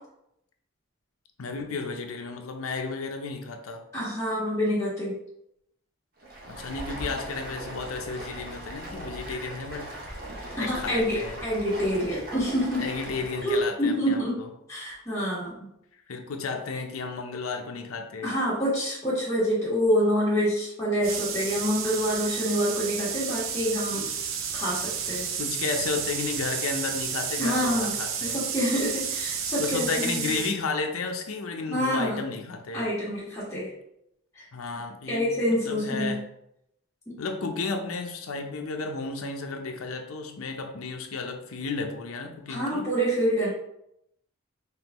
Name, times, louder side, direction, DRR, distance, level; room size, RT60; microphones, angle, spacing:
voice 1, 1.4-3.8 6.5-9.9 10.6-11.4 12.8-14.5 15.9-18.3 25.4-28.4 29.6-32.9 34.5-36.2 37.2-42.9, left 4 dB, 90° left, 4 dB, 0.6 m, -33 dB
voice 2, 3.9-5.1 10.6-12.8 13.4-14.4 14.7-15.7 18.2-24.1 24.5-25.3 27.4-30.5 31.7-32.2 32.7-33.7 34.3-34.4 35.1-36.1 42.5-43.5, equal, 15° left, -10 dB, 1.4 m, -27 dB
Stream, 6.2-13.7, right 1 dB, 45° right, 0.9 m, -39 dB
sound 1, 21.0-30.6, right 7 dB, 75° right, 0.6 m, -31 dB
5.3 x 3.1 x 3.0 m, 0.79 s
head